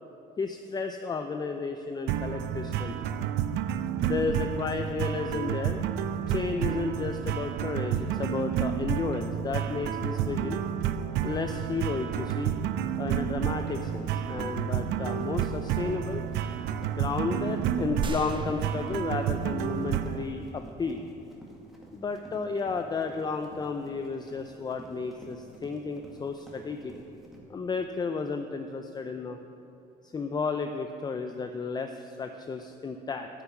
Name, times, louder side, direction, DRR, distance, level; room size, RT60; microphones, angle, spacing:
voice 1, 0.4-2.9 4.0-5.8 6.3-10.6 11.2-12.5 13.0-16.2 17.0-21.0 21.9-26.9 27.5-29.4 30.0-33.3, left 4 dB, 25° left, 6 dB, 0.5 m, -33 dB
sound 1, 2.1-20.2, right 9 dB, 85° right, 0.5 m, -30 dB
Run, 13.1-27.4, right 1 dB, ahead, 2.0 m, -51 dB
sound 2, 18.0-20.3, right 3 dB, 30° right, 0.7 m, -39 dB
9.4 x 6.9 x 8.1 m, 2.9 s
cardioid pair, 110°, 17 cm